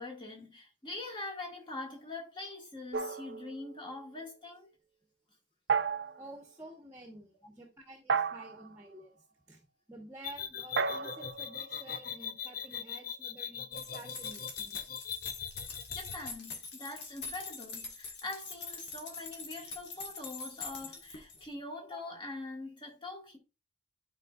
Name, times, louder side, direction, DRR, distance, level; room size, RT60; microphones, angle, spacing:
voice 1, 0.0-4.7 15.9-23.4, left 2 dB, 25° left, 1.7 m, -43 dB
sound 1, 2.9-4.0 5.7-6.3 8.1-8.7 10.8-12.5, right 5 dB, 65° right, 0.5 m, -34 dB
voice 2, 6.2-9.6 9.9-14.8, right 1 dB, 15° right, 1.1 m, -51 dB
sound 2, 10.2-16.3, left 8 dB, 50° left, 0.5 m, -40 dB
sound 3, 13.7-21.5, left 4 dB, 65° left, 1.5 m, -44 dB
10.5 x 4.5 x 2.4 m
head